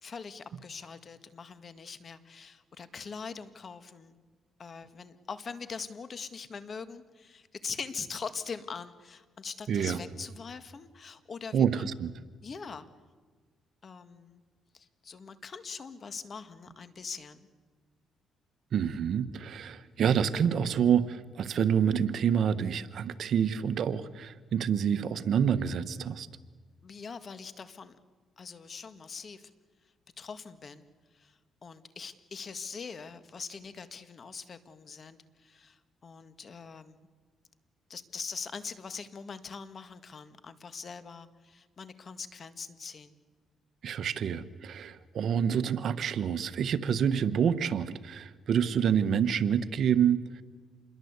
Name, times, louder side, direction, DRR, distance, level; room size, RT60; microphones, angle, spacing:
voice 1, 0.0-4.2 4.6-11.9 12.4-12.9 13.8-14.4 14.7-17.5 26.8-28.0 28.4-29.5 30.2-30.8 31.1-37.0 37.9-43.2, left 5 dB, 45° left, 11 dB, 1.8 m, -42 dB
voice 2, 9.7-10.0 11.5-12.1 18.7-26.3 43.8-50.4, right 8 dB, 65° right, 13 dB, 1.2 m, -27 dB
28.0 x 22.0 x 8.2 m, 1.5 s
cardioid pair, 90°, 0 cm